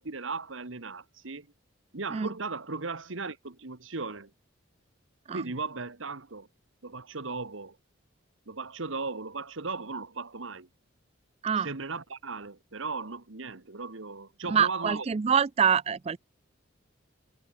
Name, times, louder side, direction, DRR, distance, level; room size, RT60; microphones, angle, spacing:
voice 1, 0.0-1.5 1.9-4.3 5.3-6.5 6.8-7.8 8.5-10.7 11.6-15.1, right 4 dB, 75° right, 1.6 m, -37 dB
voice 2, 14.5-16.2, right 7 dB, 30° right, 0.4 m, -25 dB
head